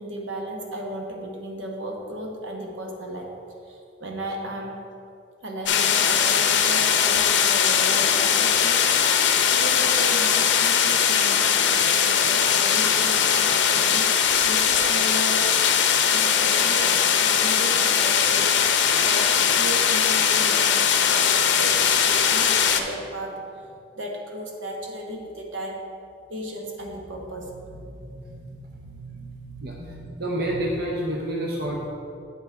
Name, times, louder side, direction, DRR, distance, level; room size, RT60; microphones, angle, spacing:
voice 1, 0.0-3.3 3.6-4.9 5.4-9.1 9.6-15.5 16.0-18.7 19.0-25.9 26.3-30.6 31.6-31.9, right 1 dB, 80° right, 1 dB, 1.1 m, -35 dB
sound 1, 5.7-22.8, left 7 dB, 70° left, 0.6 m, -20 dB
voice 2, 30.2-31.9, right 1 dB, 55° right, -1 dB, 0.8 m, -27 dB
7.8 x 5.8 x 4.7 m, 2.5 s
head